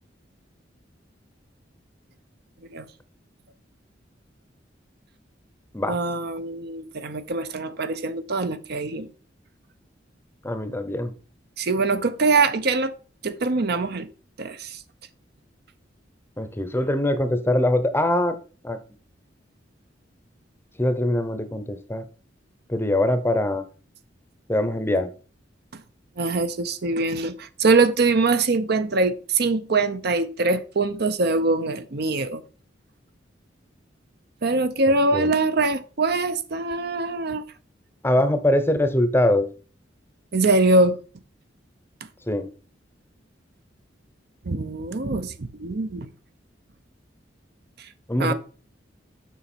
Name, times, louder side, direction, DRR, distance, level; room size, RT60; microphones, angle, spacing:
voice 1, 5.9-9.1 11.6-12.9 13.2-14.1 14.4-14.8 26.2-32.4 34.4-37.4 40.3-41.0 44.5-46.1 48.2-48.3, right 3 dB, 60° right, 0.7 m, -23 dB
voice 2, 10.4-11.1 16.4-18.4 18.6-18.8 20.8-22.0 22.7-23.6 24.5-25.1 35.1-35.3 38.0-39.5 42.3-42.5 48.1-48.3, left 1 dB, 15° left, 0.7 m, -22 dB
7.1 x 6.0 x 4.3 m
head